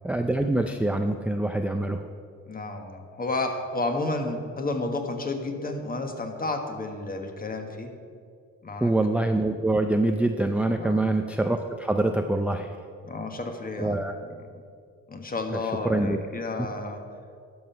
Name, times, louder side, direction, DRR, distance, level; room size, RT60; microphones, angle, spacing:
voice 1, 0.0-2.0 8.8-12.7 13.8-14.1 15.5-16.2 16.6-16.7, right 2 dB, 5° right, 5 dB, 0.4 m, -25 dB
voice 2, 2.5-7.9 8.6-8.9 10.8-11.0 13.0-14.1 15.1-17.0, left 2 dB, 30° left, 5 dB, 1.3 m, -31 dB
12.5 x 5.6 x 5.6 m, 2.3 s
cardioid pair, 90°, 30 cm